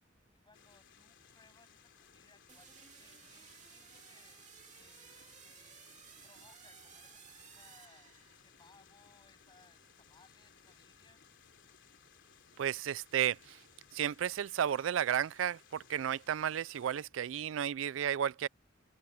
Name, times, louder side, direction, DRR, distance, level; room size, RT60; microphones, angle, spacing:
voice 1, 0.3-11.2, left 3 dB, 25° left, 7.9 m, -66 dB
sound 1, 0.5-17.1, left 7 dB, 65° left, 3.7 m, -62 dB
sound 2, 2.5-8.7, right 8 dB, 40° right, 2.6 m, -57 dB
voice 2, 12.6-13.6 13.9-18.5, right 9 dB, 70° right, 0.3 m, -33 dB
open air
head